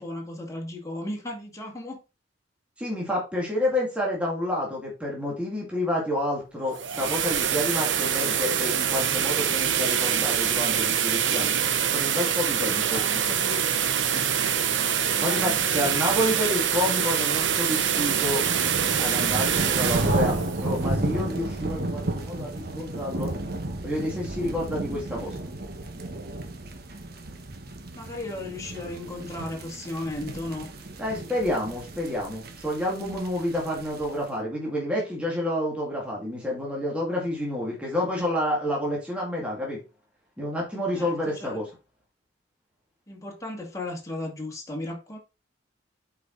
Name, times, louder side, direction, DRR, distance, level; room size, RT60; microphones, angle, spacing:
voice 1, 0.0-2.0 12.8-13.6 14.1-14.3 15.0-15.9 27.9-30.7 40.9-41.6 43.1-45.2, left 2 dB, 20° left, -1 dB, 2.1 m, -35 dB
voice 2, 2.8-11.5 11.8-13.0 15.2-18.4 19.0-23.4 23.8-25.4 31.0-39.8 40.4-41.7, left 1 dB, 5° right, -3 dB, 2.2 m, -29 dB
sound 1, 6.6-21.5, right 8 dB, 85° right, 0.9 m, -25 dB
sound 2, 16.7-34.2, right 2 dB, 55° right, 1.3 m, -33 dB
8.2 x 4.8 x 4.0 m, 0.29 s
head